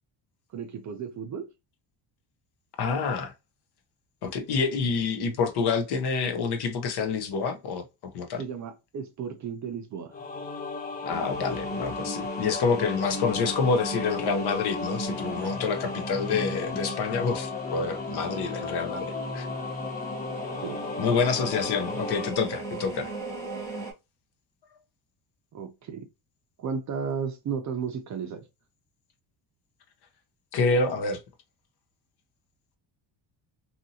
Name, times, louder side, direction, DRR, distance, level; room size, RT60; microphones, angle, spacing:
voice 1, 0.5-1.5 8.4-10.1 15.4-15.6 20.6-20.8 25.5-26.0 26.6-28.4, right 6 dB, 40° right, 0.5 m, -34 dB
voice 2, 2.8-3.3 4.2-7.8 8.1-8.4 11.0-19.5 21.0-23.1 30.5-31.2, left 5 dB, 55° left, 0.8 m, -27 dB
sound 1, 10.1-22.3, left 4 dB, 20° left, 0.3 m, -35 dB
sound 2, 11.1-23.9, right 2 dB, 5° left, 1.0 m, -38 dB
2.8 x 2.6 x 2.7 m
cardioid pair, 125°, 47 cm